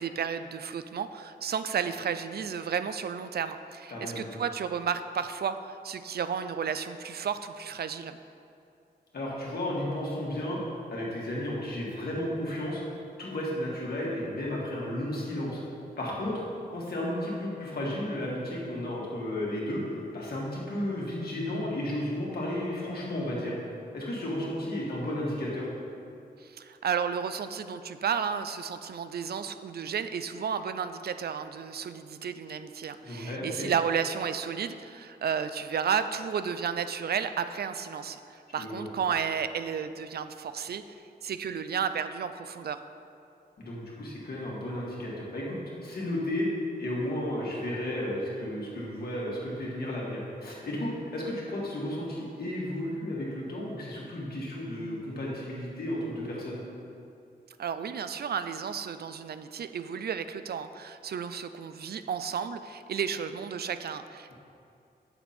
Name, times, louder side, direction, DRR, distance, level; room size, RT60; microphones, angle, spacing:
voice 1, 0.0-8.2 26.4-40.8 41.2-42.8 57.6-64.3, right 7 dB, 70° right, 11 dB, 0.4 m, -32 dB
voice 2, 3.9-4.3 9.1-10.6 10.9-12.8 13.2-15.6 16.0-16.4 16.7-19.8 20.1-23.5 23.9-25.7 33.0-33.7 38.6-38.9 43.6-46.5 46.8-56.6, left 1 dB, 65° left, -5 dB, 2.0 m, -33 dB
8.2 x 6.9 x 4.3 m, 2.6 s
wide cardioid pair, 150°, 17 cm